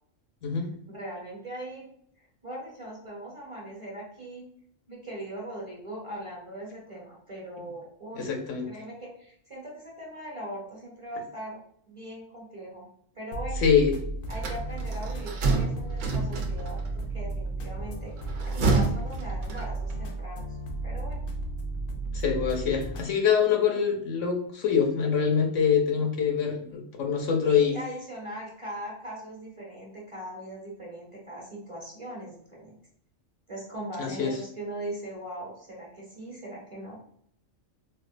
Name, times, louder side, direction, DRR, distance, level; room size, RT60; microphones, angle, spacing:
voice 1, 0.9-1.9 2.2-4.5 4.9-8.4 8.7-11.6 11.9-12.9 13.1-13.6 14.3-20.5 20.8-21.2 27.4-32.8 33.5-37.0, right 1 dB, 25° right, -4 dB, 1.0 m, -40 dB
voice 2, 8.2-8.6 13.6-13.9 22.1-27.8 34.0-34.4, left 7 dB, 70° left, 2 dB, 1.0 m, -24 dB
sound 1, 13.3-23.1, right 2 dB, 90° left, 1.1 m, -34 dB
sound 2, 14.3-16.9 18.2-20.0, right 3 dB, 70° right, 1.0 m, -28 dB
4.2 x 2.3 x 2.5 m, 0.65 s
omnidirectional pair, 1.4 m